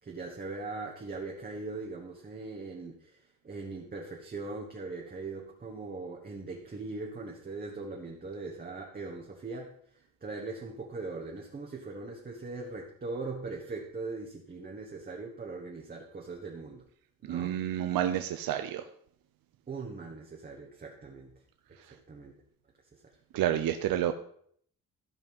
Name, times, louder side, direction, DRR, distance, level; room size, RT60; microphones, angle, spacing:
voice 1, 0.0-3.2 3.4-16.8 17.2-17.8 19.7-21.3 21.9-22.4 22.9-23.0, right 3 dB, 25° right, -1 dB, 1.4 m, -40 dB
voice 2, 17.3-18.9 21.8-21.9 23.3-24.1, right 11 dB, 80° right, 8 dB, 0.7 m, -29 dB
14.0 x 5.5 x 5.4 m, 0.64 s
cardioid pair, 145°, 34 cm